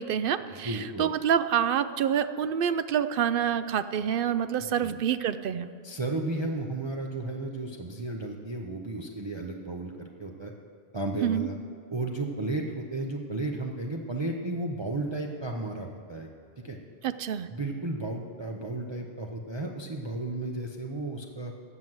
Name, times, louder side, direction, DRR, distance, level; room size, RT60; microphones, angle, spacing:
voice 1, 0.0-5.7 11.2-11.5 17.0-17.5, right 9 dB, 60° right, 12 dB, 0.7 m, -27 dB
voice 2, 0.6-1.1 4.6-5.0 5.8-10.5 10.9-11.6 11.9-16.3 16.6-16.8 17.5-21.5, right 2 dB, 30° right, 1 dB, 0.7 m, -33 dB
15.0 x 6.0 x 7.8 m, 2.2 s
omnidirectional pair, 1.1 m